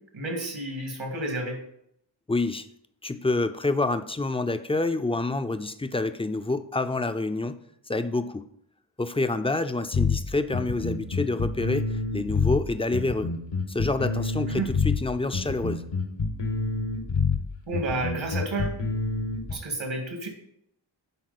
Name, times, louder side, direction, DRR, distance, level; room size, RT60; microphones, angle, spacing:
voice 1, 0.1-1.6 14.5-14.7 17.7-18.8 19.5-20.3, right 2 dB, 80° right, 2 dB, 2.2 m, -31 dB
voice 2, 2.3-2.7 3.0-7.6 7.9-8.5 9.0-13.3 13.7-15.8, left 2 dB, 15° left, 10 dB, 0.4 m, -27 dB
sound 1, 9.9-19.5, left 4 dB, 75° left, 1.3 m, -27 dB
11.0 x 4.1 x 4.1 m, 0.73 s
wide cardioid pair, 75°, 45 cm